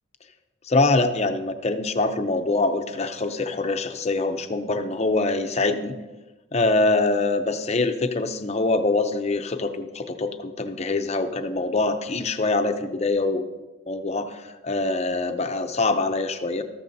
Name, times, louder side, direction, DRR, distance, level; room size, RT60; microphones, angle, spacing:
voice 1, 0.6-5.9 6.5-13.5 13.9-16.6, left 3 dB, 30° left, 8 dB, 0.7 m, -24 dB
14.0 x 12.0 x 2.7 m, 1.2 s
head